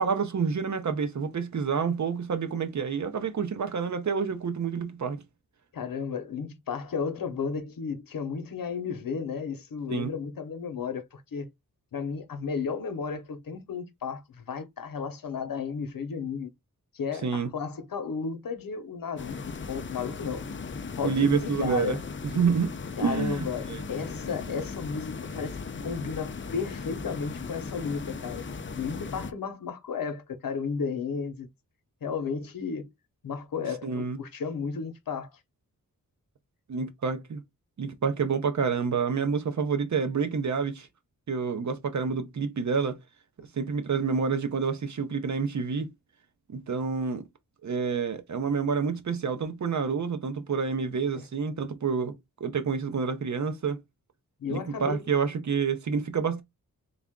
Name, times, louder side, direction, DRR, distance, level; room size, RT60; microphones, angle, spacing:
voice 1, 0.0-5.2 9.9-10.1 17.2-17.5 21.0-22.0 22.3-22.7 23.0-23.8 33.8-34.2 36.7-37.4 37.8-40.9 41.3-43.0 43.5-45.9 46.5-47.2 47.6-52.1 52.4-53.8 54.5-56.4, right 5 dB, 55° right, 0.7 m, -28 dB
voice 2, 5.7-11.5 11.9-16.5 16.9-19.4 19.7-20.5 20.9-22.0 23.0-28.4 28.8-31.5 32.0-32.9 33.2-35.3 51.1-51.3 54.4-55.1, left 5 dB, 75° left, 0.8 m, -33 dB
sound 1, 19.2-29.3, left 4 dB, 35° left, 0.4 m, -37 dB
3.4 x 2.4 x 3.6 m
wide cardioid pair, 115°, 34 cm